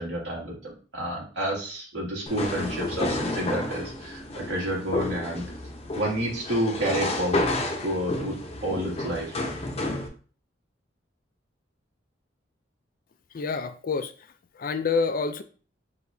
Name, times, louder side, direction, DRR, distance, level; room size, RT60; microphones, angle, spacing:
voice 1, 0.0-5.5 5.9-7.4 7.8-8.3 8.6-9.4, right 1 dB, 70° right, -4 dB, 2.2 m, -29 dB
sound 1, 2.3-10.1, left 1 dB, 35° left, 0.8 m, -30 dB
voice 2, 13.3-14.3 14.5-15.4, left 4 dB, 50° left, 10 dB, 0.4 m, -27 dB
6.5 x 2.9 x 2.7 m, 0.39 s
head